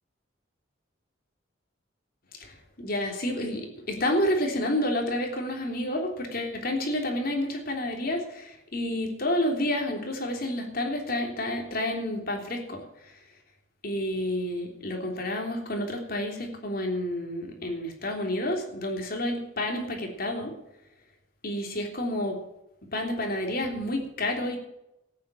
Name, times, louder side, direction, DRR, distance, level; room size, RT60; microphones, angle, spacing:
voice 1, 2.4-13.2 13.8-20.5 21.4-22.4 22.9-24.6, left 1 dB, 50° left, 2 dB, 3.4 m, -30 dB
13.5 x 9.8 x 7.7 m, 0.87 s
head